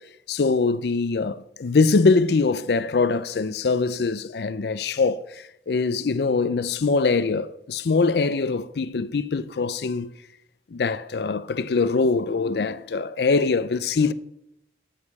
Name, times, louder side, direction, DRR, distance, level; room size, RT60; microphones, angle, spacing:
voice 1, 0.3-10.1 10.7-14.1, left 4 dB, 70° left, 0.5 m, -23 dB
8.7 x 6.6 x 6.9 m
head